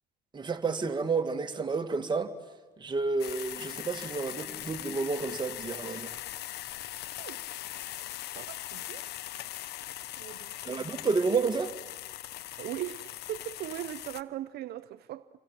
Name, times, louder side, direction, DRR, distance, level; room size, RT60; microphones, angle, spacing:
voice 1, 0.3-2.3 2.8-6.1 10.6-11.7, right 4 dB, 25° right, 2.4 m, -30 dB
sound 1, 3.2-14.2, left 14 dB, 75° left, 1.0 m, -40 dB
voice 2, 8.3-9.0 10.2-10.5 12.6-15.3, right 14 dB, 75° right, 0.8 m, -39 dB
29.0 x 25.0 x 7.5 m
cardioid pair, 110°, 17 cm